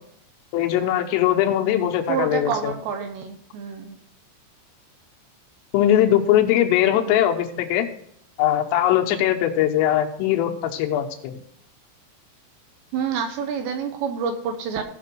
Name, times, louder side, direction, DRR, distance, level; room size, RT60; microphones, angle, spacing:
voice 1, 0.5-2.7 5.7-7.9 8.4-11.3, left 11 dB, 90° left, 4 dB, 3.7 m, -20 dB
voice 2, 2.1-4.0 12.9-14.8, right 6 dB, 75° right, 6 dB, 2.8 m, -27 dB
16.0 x 6.0 x 4.6 m, 0.70 s
omnidirectional pair, 5.7 m